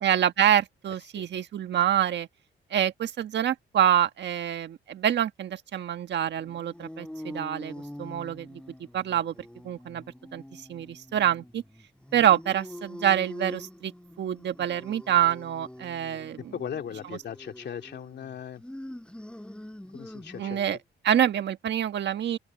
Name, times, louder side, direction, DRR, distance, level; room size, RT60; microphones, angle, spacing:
voice 1, 0.0-2.3 2.7-8.6 8.9-9.3 9.6-10.0 10.3-11.6 12.1-13.9 14.2-16.5 20.4-20.8 21.0-22.4, right 10 dB, 60° right, 1.6 m, -26 dB
sound 1, 6.3-20.8, left 1 dB, 5° left, 7.9 m, -44 dB
voice 2, 16.5-18.6 19.9-20.8, left 8 dB, 60° left, 2.7 m, -38 dB
open air
cardioid pair, 90°, 20 cm